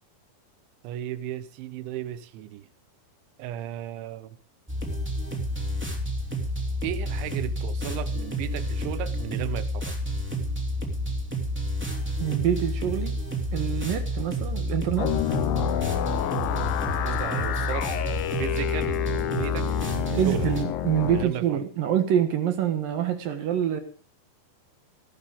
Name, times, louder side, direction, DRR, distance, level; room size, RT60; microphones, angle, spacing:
voice 1, 0.8-2.7 3.4-4.4 6.8-10.0 17.0-17.9 18.4-19.7 20.1-20.5 21.0-21.6, right 12 dB, 85° right, 3.3 m, -35 dB
sound 1, 4.7-20.6, equal, 5° right, 1.8 m, -30 dB
voice 2, 12.2-13.2 13.5-15.1 20.2-23.8, right 10 dB, 65° right, 2.6 m, -26 dB
sound 2, 15.0-21.2, left 12 dB, 75° left, 2.2 m, -29 dB
18.5 x 12.0 x 3.7 m
omnidirectional pair, 5.3 m